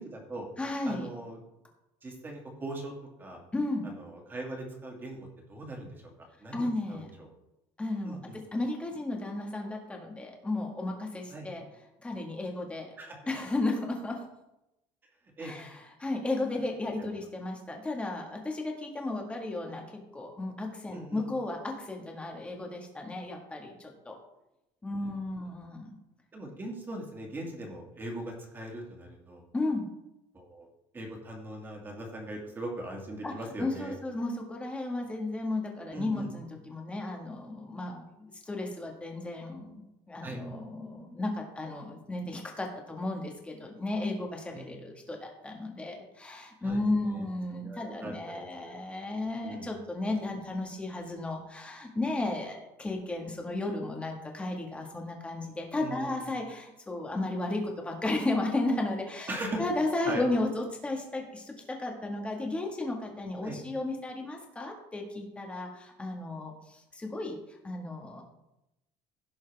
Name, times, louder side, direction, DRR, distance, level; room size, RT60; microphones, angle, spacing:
voice 1, 0.0-0.5 0.9-1.4 2.0-2.9 3.2-3.4 3.8-5.2 5.5-5.9 6.4-7.3 8.0-8.4 11.3-11.5 13.0-13.2 15.4-15.5 20.9-21.2 26.3-29.4 30.3-30.7 30.9-33.9 35.9-36.3 40.2-40.4 44.5-44.7 46.6-46.8 47.6-48.7 49.4-49.7 55.8-56.3 59.3-59.6 60.1-60.2 63.4-63.6, right 1 dB, 20° right, 0 dB, 2.4 m, -40 dB
voice 2, 0.6-1.1 3.5-3.9 6.5-7.1 7.8-11.6 12.0-12.9 13.3-14.2 15.4-24.1 24.8-25.9 29.5-29.8 33.2-33.3 33.6-59.3 59.6-68.2, left 2 dB, 10° left, 1 dB, 1.8 m, -34 dB
16.5 x 6.3 x 3.5 m, 0.90 s
cardioid pair, 160°, 11 cm